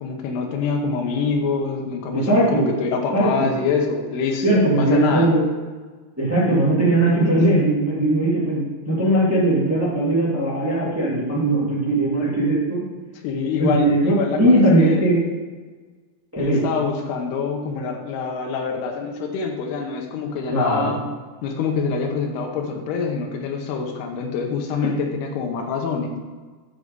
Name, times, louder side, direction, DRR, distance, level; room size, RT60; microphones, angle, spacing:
voice 1, 0.0-5.3 7.1-7.7 13.2-15.1 16.4-21.1 21.4-26.2, left 5 dB, 90° left, 2 dB, 3.0 m, -25 dB
voice 2, 2.1-2.7 3.1-3.5 4.4-5.4 6.2-12.8 13.6-15.2 16.3-16.6 20.5-20.9, right 1 dB, 15° right, -7 dB, 0.4 m, -19 dB
8.4 x 4.9 x 5.2 m, 1.4 s
omnidirectional pair, 4.5 m